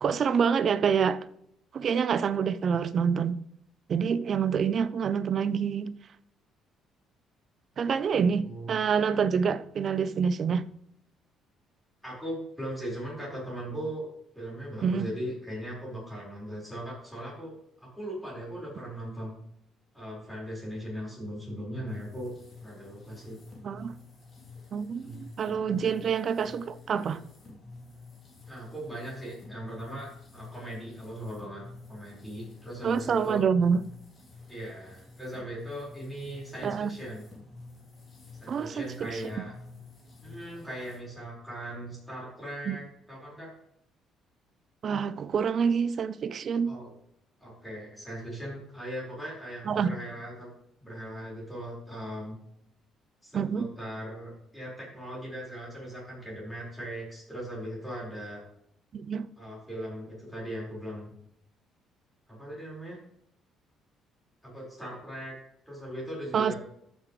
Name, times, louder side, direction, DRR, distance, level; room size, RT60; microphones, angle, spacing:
voice 1, 0.0-1.2 1.7-3.4 3.9-5.9 7.8-10.7 14.8-15.1 23.6-23.9 24.7-27.2 32.8-33.8 36.6-36.9 38.5-39.2 42.7-42.8 44.8-46.7 49.7-50.0 53.3-53.7 58.9-59.3 66.3-66.5, right 6 dB, 35° right, 0.5 m, -27 dB
voice 2, 12.0-14.1 14.3-17.5 17.8-19.4 19.9-22.3 22.6-23.4 24.9-25.2 28.5-31.6 31.9-33.4 34.5-37.2 38.4-39.5 40.2-43.5 46.6-46.9 47.4-50.5 50.8-52.4 53.2-58.4 59.4-61.1 62.3-63.0 64.4-65.3 65.7-66.6, equal, ahead, 4.7 m, -39 dB
sound 1, 21.9-41.0, left 3 dB, 30° left, 2.8 m, -50 dB
14.0 x 7.6 x 3.2 m
cardioid pair, 165°, 0 cm